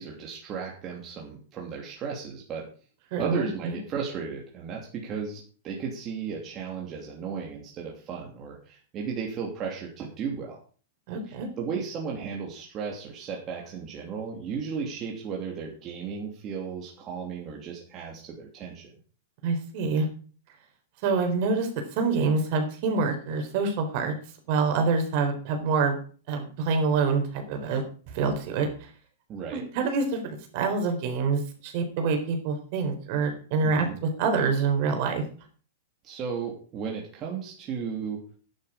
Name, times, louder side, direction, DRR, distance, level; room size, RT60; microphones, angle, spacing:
voice 1, 0.0-2.7 3.2-10.6 11.3-18.9 29.3-29.6 33.6-34.0 36.0-38.2, right 6 dB, 25° right, -2 dB, 2.9 m, -35 dB
voice 2, 3.1-3.8 11.1-11.5 19.4-20.1 21.0-24.1 24.5-26.0 26.3-27.8 28.1-28.7 29.5-35.2, right 4 dB, 40° right, 5 dB, 4.1 m, -26 dB
12.0 x 11.0 x 5.1 m, 0.41 s
supercardioid pair, 165°, 0 cm